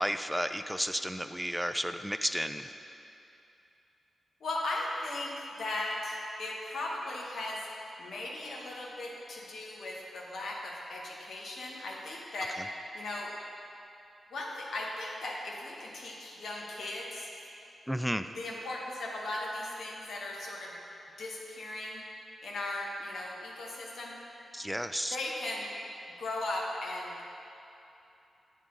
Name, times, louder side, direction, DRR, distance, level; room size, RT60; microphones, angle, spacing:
voice 1, 0.0-2.7 17.9-18.3 24.5-25.2, equal, 5° right, 9 dB, 0.3 m, -32 dB
voice 2, 4.4-7.6 8.0-12.6 12.9-13.3 14.3-17.3 18.3-20.8 21.2-22.0 22.4-24.1 25.1-25.7 26.2-27.3, left 2 dB, 75° left, -2 dB, 1.0 m, -37 dB
8.6 x 3.7 x 3.8 m, 2.9 s
supercardioid pair, 45°, 0 cm